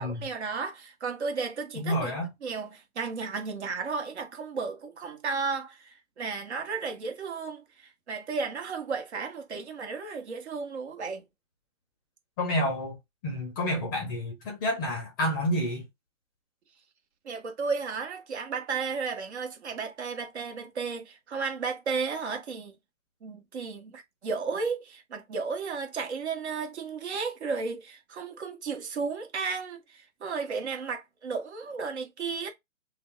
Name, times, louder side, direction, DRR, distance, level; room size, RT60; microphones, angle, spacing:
voice 1, 0.0-2.1 2.4-11.2 17.2-22.8 23.2-32.5, right 5 dB, 55° right, 1.3 m, -34 dB
voice 2, 1.8-2.3 12.4-13.0 13.2-15.8, equal, 15° left, 0.7 m, -29 dB
2.8 x 2.2 x 3.7 m
hypercardioid pair, 145°, 41 cm